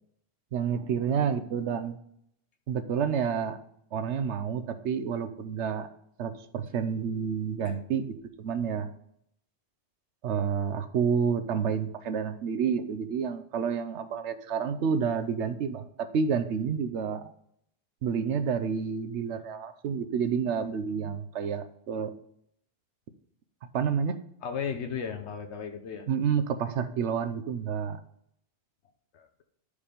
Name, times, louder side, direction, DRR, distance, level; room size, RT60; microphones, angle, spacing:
voice 1, 0.5-2.0 2.7-3.6 3.9-5.9 6.2-8.9 10.2-17.3 18.0-22.1 23.7-24.2 26.1-28.0, right 6 dB, 85° right, 9 dB, 1.0 m, -29 dB
voice 2, 24.4-26.1 29.1-29.4, left 7 dB, 80° left, 5 dB, 1.2 m, -35 dB
11.0 x 5.1 x 5.1 m, 0.72 s
omnidirectional pair, 1.1 m